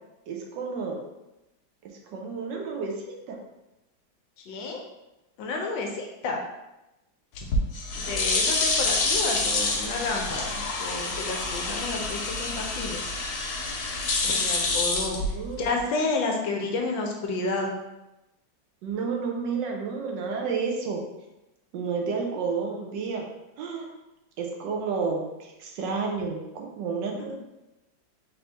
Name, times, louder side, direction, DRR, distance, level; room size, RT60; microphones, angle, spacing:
voice 1, 0.3-1.0 2.1-3.4 15.0-15.7 18.8-21.0 21.7-23.3 23.6-23.9 24.4-27.3, right 5 dB, 75° right, 1 dB, 1.2 m, -31 dB
voice 2, 4.4-4.8 5.4-6.4 7.3-7.5 8.0-13.1 14.2-17.7, left 3 dB, 80° left, 2 dB, 1.4 m, -31 dB
sound 1, 7.3-15.8, left 3 dB, 65° left, 1.2 m, -27 dB
4.1 x 2.7 x 3.3 m, 0.97 s
omnidirectional pair, 2.1 m